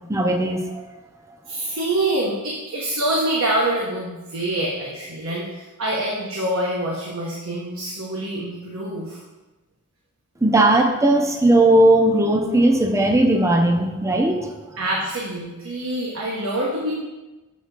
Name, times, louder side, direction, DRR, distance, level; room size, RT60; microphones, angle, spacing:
voice 1, 0.1-0.8 10.4-14.5, right 1 dB, 15° right, 3 dB, 0.7 m, -17 dB
voice 2, 1.5-9.2 14.8-16.9, right 1 dB, 75° right, -4 dB, 1.2 m, -25 dB
7.3 x 3.5 x 5.9 m, 1.1 s
head